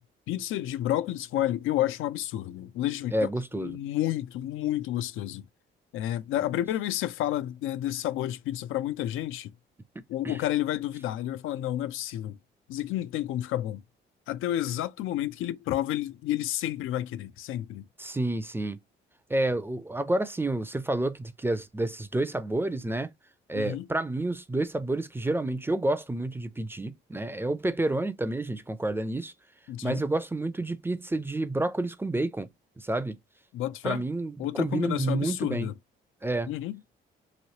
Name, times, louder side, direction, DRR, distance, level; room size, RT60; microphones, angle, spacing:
voice 1, 0.3-3.3 3.5-5.5 5.9-9.5 10.1-12.4 12.7-13.8 14.3-17.9 23.5-23.9 29.7-30.0 33.5-34.1 34.4-35.8 36.5-36.8, left 13 dB, 80° left, 0.4 m, -30 dB
voice 2, 3.1-3.7 10.2-10.4 18.0-18.8 19.3-23.1 23.5-29.3 29.8-32.5 32.8-33.2 33.8-35.7 36.2-36.5, right 2 dB, 10° right, 0.4 m, -29 dB
3.1 x 2.7 x 2.8 m
cardioid pair, 100°, 21 cm